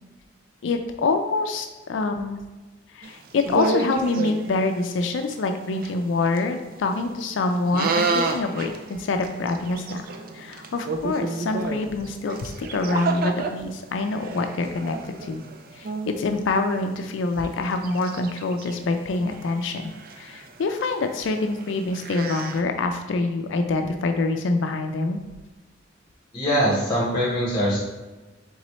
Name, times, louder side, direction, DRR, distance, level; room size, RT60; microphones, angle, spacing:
voice 1, 0.6-2.4 2.9-10.0 10.3-15.4 15.7-25.2, left 3 dB, 85° left, 6 dB, 0.4 m, -26 dB
sound 1, 3.0-4.8 5.3-5.4 5.6-5.9 6.3-6.4 6.7-7.0 7.6-13.5 14.0-16.3 16.8-16.9 17.4-18.7 19.1-22.6, right 4 dB, 50° right, 0.4 m, -30 dB
voice 2, 26.3-27.8, equal, 25° left, -5 dB, 1.1 m, -22 dB
4.0 x 3.7 x 3.1 m, 1.2 s
head